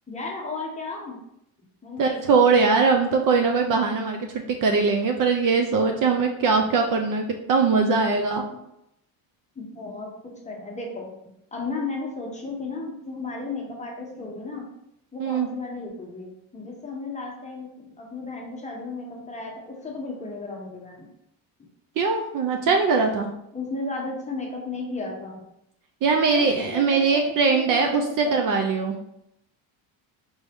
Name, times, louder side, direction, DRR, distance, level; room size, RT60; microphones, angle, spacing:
voice 1, 0.1-1.2 1.8-2.4 9.6-11.1 11.5-14.7 15.1-21.1 23.5-25.4 26.3-28.6, left 3 dB, 15° left, -1 dB, 0.7 m, -34 dB
voice 2, 2.0-8.4 15.2-15.5 22.0-23.3 26.0-29.0, right 4 dB, 45° right, 3 dB, 0.4 m, -21 dB
4.7 x 2.7 x 3.4 m, 0.80 s
cardioid pair, 140°, 48 cm